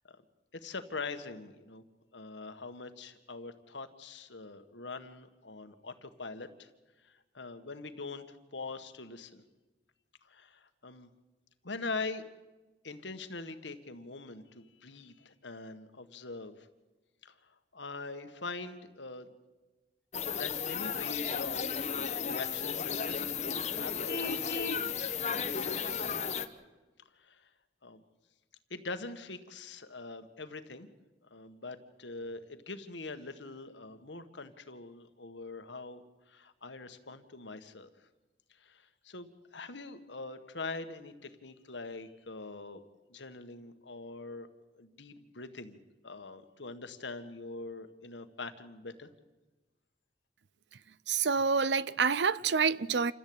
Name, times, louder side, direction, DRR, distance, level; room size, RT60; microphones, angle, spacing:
voice 1, 0.5-1.8 2.1-6.7 7.0-9.4 10.2-11.1 11.6-12.2 12.8-16.7 17.2-17.3 17.7-19.3 20.3-24.3 25.3-26.1 27.1-27.5 27.8-28.0 28.7-30.9 31.3-37.9 38.6-42.8 43.1-44.5 44.7-45.8 46.0-49.1, left 3 dB, 80° left, 1.7 m, -43 dB
sound 1, 20.1-26.5, left 7 dB, 40° left, 1.1 m, -34 dB
Vehicle horn car horn honking, 24.1-24.9, left 3 dB, 55° left, 1.4 m, -36 dB
voice 2, 51.1-53.1, right 5 dB, 75° right, 0.7 m, -27 dB
28.0 x 14.5 x 8.8 m
head